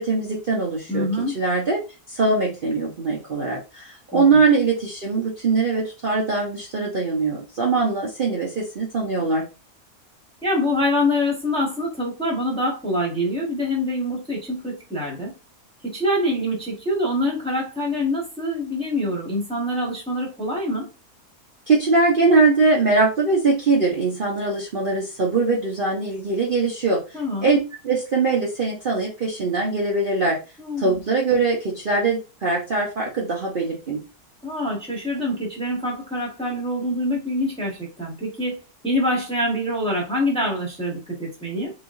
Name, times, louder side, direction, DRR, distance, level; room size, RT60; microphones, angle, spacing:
voice 1, 0.0-1.1 1.3-1.8 2.1-9.5 21.7-27.0 27.4-27.6 27.8-30.4 30.8-34.0, right 3 dB, 40° right, 0.9 m, -21 dB
voice 2, 0.9-1.4 4.1-4.4 10.4-15.3 15.8-20.9 27.1-27.5 30.6-31.0 34.4-38.6 38.8-41.7, left 1 dB, 5° left, 1.3 m, -25 dB
3.6 x 3.4 x 2.5 m
omnidirectional pair, 1.6 m